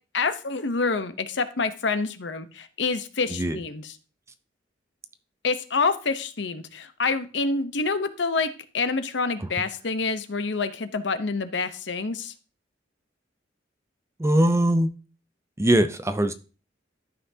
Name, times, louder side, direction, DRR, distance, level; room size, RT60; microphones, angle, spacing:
voice 1, 0.1-3.8 5.4-12.3, left 4 dB, 70° left, 11 dB, 0.8 m, -27 dB
voice 2, 3.3-3.6 9.4-9.5 14.2-14.9 15.6-16.3, right 1 dB, 15° right, 10 dB, 0.5 m, -21 dB
13.0 x 5.7 x 2.7 m, 0.35 s
head